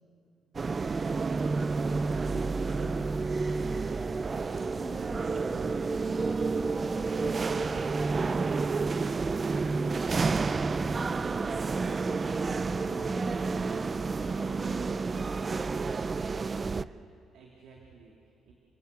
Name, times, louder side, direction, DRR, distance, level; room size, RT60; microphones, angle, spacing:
sound 1, 0.5-16.8, right 4 dB, 35° right, 0.5 m, -30 dB
sound 2, 1.2-15.4, left 3 dB, 25° left, 2.5 m, -49 dB
voice 1, 1.9-3.1 4.3-6.6, right 1 dB, 50° right, -8 dB, 7.8 m, -48 dB
voice 2, 16.3-18.5, right 4 dB, 80° right, 0 dB, 3.0 m, -55 dB
29.5 x 16.5 x 8.3 m, 2.6 s
cardioid pair, 90°, 0 cm